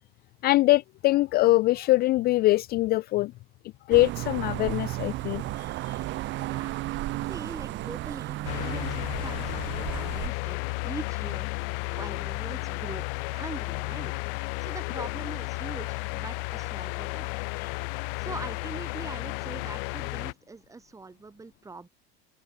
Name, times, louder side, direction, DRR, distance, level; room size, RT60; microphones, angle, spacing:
voice 1, 0.4-3.3 3.9-6.0 17.6-17.7, left 18 dB, 30° left, 0.5 m, -23 dB
sound 1, 3.9-10.3, right 17 dB, 35° right, 1.3 m, -34 dB
voice 2, 6.4-6.8 7.3-11.5 11.9-14.1 14.4-17.3 18.2-21.9, right 3 dB, 10° right, 3.5 m, -42 dB
sound 2, 8.4-20.3, left 30 dB, 60° left, 1.9 m, -33 dB
supercardioid pair, 155°, 31 cm